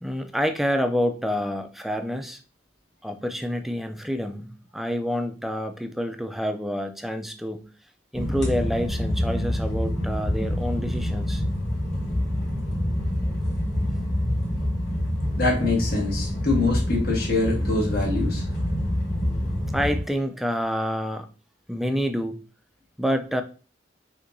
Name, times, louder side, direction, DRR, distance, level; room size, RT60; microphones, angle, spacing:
voice 1, 0.0-2.4 3.0-7.7 8.1-11.4 19.7-21.3 21.7-22.4 23.0-23.4, equal, ahead, 7 dB, 0.4 m, -28 dB
sound 1, 8.1-20.0, left 1 dB, 40° left, 1.8 m, -26 dB
voice 2, 15.4-18.4, left 3 dB, 55° left, -1 dB, 1.3 m, -24 dB
6.1 x 2.8 x 2.6 m, 0.36 s
head